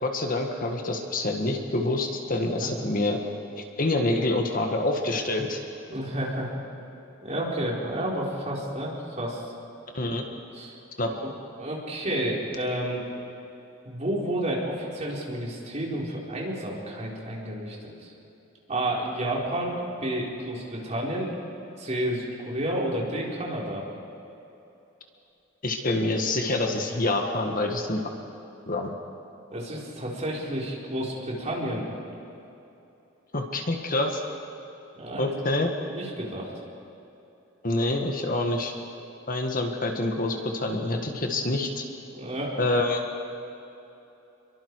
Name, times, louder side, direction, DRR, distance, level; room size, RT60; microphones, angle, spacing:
voice 1, 0.0-3.2 3.6-5.6 9.9-10.2 11.0-11.1 25.6-28.0 28.7-28.9 33.3-34.2 35.2-35.7 37.6-38.7 39.3-41.8 42.6-43.0, left 2 dB, 45° left, 3 dB, 1.7 m, -26 dB
voice 2, 5.9-6.5 7.2-9.4 10.5-10.8 11.1-11.2 11.6-13.0 13.8-18.1 18.7-21.3 21.8-23.8 29.5-31.9 34.9-35.3 35.8-36.5 42.1-42.6, right 1 dB, 35° right, -3 dB, 4.4 m, -30 dB
28.5 x 23.0 x 4.8 m, 2.9 s
head